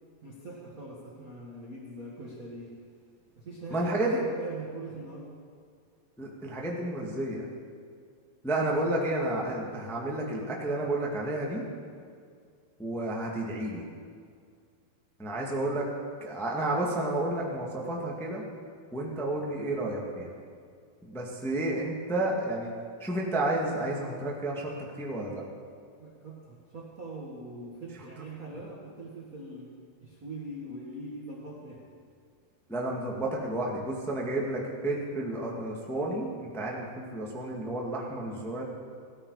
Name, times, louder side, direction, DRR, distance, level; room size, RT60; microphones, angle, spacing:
voice 1, 0.2-2.8 3.4-5.4 26.0-29.7 30.0-31.8, right 2 dB, 55° right, -4 dB, 0.9 m, -42 dB
voice 2, 3.7-4.2 6.2-7.5 8.4-11.6 12.8-13.8 15.2-15.9 16.2-18.4 18.9-20.3 21.0-22.7 23.0-25.4 32.7-38.6, right 1 dB, 5° left, -3 dB, 0.4 m, -31 dB
16.5 x 13.5 x 4.9 m, 2.2 s
omnidirectional pair, 4.2 m